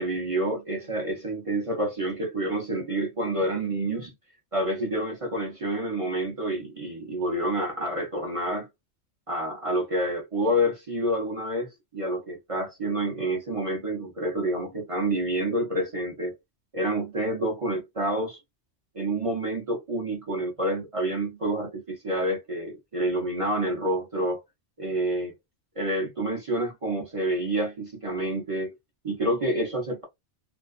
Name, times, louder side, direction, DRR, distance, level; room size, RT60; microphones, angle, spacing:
voice 1, 0.0-4.1 4.5-8.7 9.3-16.3 16.7-18.4 18.9-24.4 24.8-25.3 25.8-28.7 29.0-30.0, right 1 dB, 35° right, 0.6 m, -28 dB
2.5 x 2.3 x 2.4 m
omnidirectional pair, 1.2 m